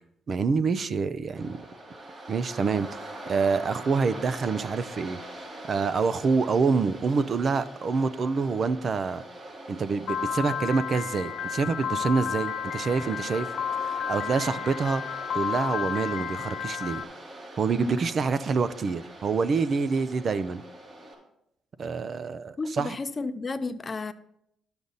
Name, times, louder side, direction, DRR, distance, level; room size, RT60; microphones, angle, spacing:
voice 1, 0.3-1.6 2.3-5.2 5.7-9.2 9.7-13.5 13.8-15.0 15.3-17.0 17.6-20.6 21.8-22.9, right 4 dB, 50° right, 0.5 m, -26 dB
Waves surf, 1.4-21.1, right 1 dB, 30° right, 4.5 m, -43 dB
Piano, 10.1-17.0, left 8 dB, 75° left, 0.6 m, -32 dB
voice 2, 22.6-24.1, left 3 dB, 35° left, 0.6 m, -32 dB
11.5 x 6.9 x 4.0 m
cardioid pair, 90°, 0 cm